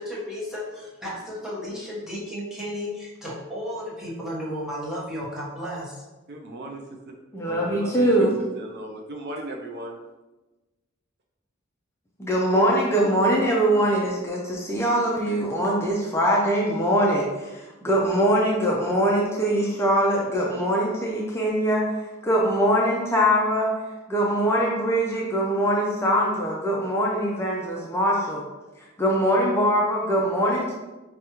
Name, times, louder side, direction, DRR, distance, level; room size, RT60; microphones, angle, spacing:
voice 1, 0.0-6.0, equal, 5° right, -7 dB, 0.9 m, -33 dB
voice 2, 6.3-6.8 7.4-10.0, right 1 dB, 55° right, 2 dB, 0.5 m, -36 dB
voice 3, 7.3-8.3 12.2-23.7 24.1-28.4 28.8-30.7, equal, 15° left, -4 dB, 0.4 m, -22 dB
4.8 x 2.3 x 2.8 m, 1.1 s
head